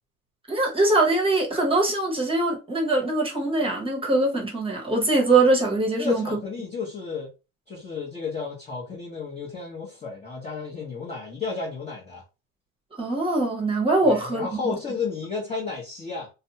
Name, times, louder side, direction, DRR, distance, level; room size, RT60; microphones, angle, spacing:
voice 1, 0.5-6.4 13.0-14.8, right 2 dB, 15° right, 1.0 m, -22 dB
voice 2, 6.0-7.3 7.7-12.2 14.0-16.3, left 4 dB, 15° left, 0.9 m, -32 dB
2.6 x 2.2 x 2.8 m
supercardioid pair, 125°, 41 cm